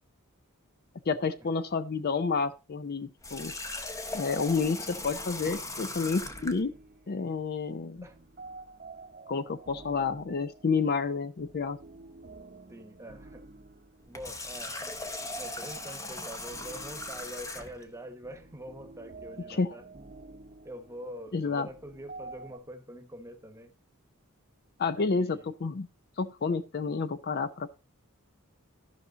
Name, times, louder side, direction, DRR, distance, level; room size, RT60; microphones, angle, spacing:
voice 1, 1.1-3.5 4.1-6.7 7.1-8.0 9.3-11.8 19.5-19.7 21.3-21.7 24.8-25.9 26.2-27.7, left 4 dB, 45° left, 0.5 m, -30 dB
Water tap faucet, 3.2-6.6 14.0-17.9, left 2 dB, 15° left, 0.7 m, -39 dB
sound 1, 4.8-22.6, right 3 dB, 40° right, 0.8 m, -50 dB
voice 2, 12.7-13.4 14.1-14.8 15.4-19.8 20.6-23.7 24.9-25.5, equal, 15° right, 1.1 m, -44 dB
13.5 x 5.6 x 3.9 m
head